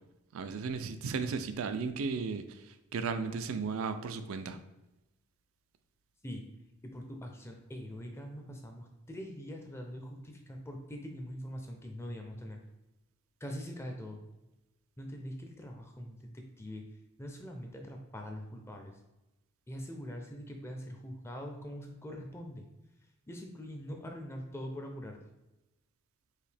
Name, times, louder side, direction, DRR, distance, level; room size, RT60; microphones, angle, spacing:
voice 1, 0.3-4.6, right 5 dB, 75° right, 9 dB, 0.4 m, -35 dB
voice 2, 6.8-12.6 13.4-14.2 15.0-16.8 17.2-19.0 19.7-22.6 23.3-25.2, equal, 10° left, 3 dB, 0.5 m, -43 dB
4.8 x 2.8 x 3.3 m, 0.96 s
head